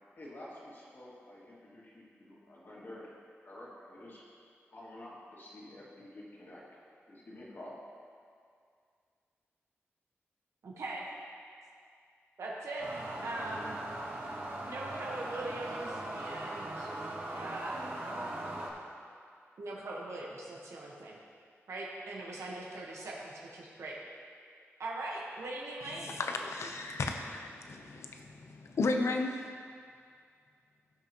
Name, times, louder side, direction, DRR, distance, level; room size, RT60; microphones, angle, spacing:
voice 1, 0.2-3.1 3.4-4.2 4.7-6.6 7.1-7.8, left 1 dB, 50° left, -6 dB, 2.3 m, -49 dB
voice 2, 10.6-11.0 12.4-12.8 13.2-13.8 14.6-16.9 17.3-17.7 19.6-21.2 21.7-23.9 24.8-26.2, right 2 dB, 90° right, -4 dB, 1.3 m, -41 dB
sound 1, 12.8-18.7, right 1 dB, 50° right, 1.6 m, -39 dB
voice 3, 26.2-29.5, left 3 dB, 75° left, 4 dB, 0.8 m, -34 dB
16.5 x 6.0 x 3.0 m, 2.2 s
wide cardioid pair, 115°, 5 cm